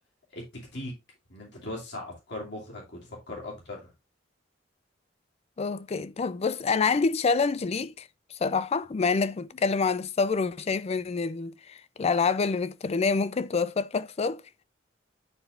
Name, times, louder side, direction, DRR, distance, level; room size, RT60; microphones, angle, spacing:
voice 1, 1.3-3.9, left 1 dB, 65° left, 2.6 m, -39 dB
voice 2, 5.6-14.4, left 4 dB, 35° left, 0.4 m, -27 dB
9.7 x 4.6 x 2.4 m
head